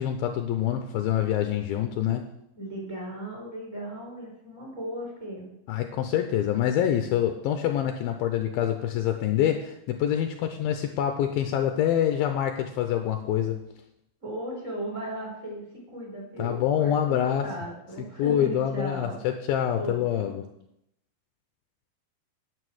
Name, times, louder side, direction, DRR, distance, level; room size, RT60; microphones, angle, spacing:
voice 1, 0.0-2.3 5.7-13.6 16.4-17.5 18.0-20.5, left 10 dB, 80° left, 6 dB, 2.2 m, -26 dB
voice 2, 2.6-5.5 14.2-19.2 19.8-20.3, right 1 dB, 15° right, -2 dB, 3.8 m, -37 dB
9.7 x 9.1 x 6.4 m, 0.80 s
omnidirectional pair, 5.0 m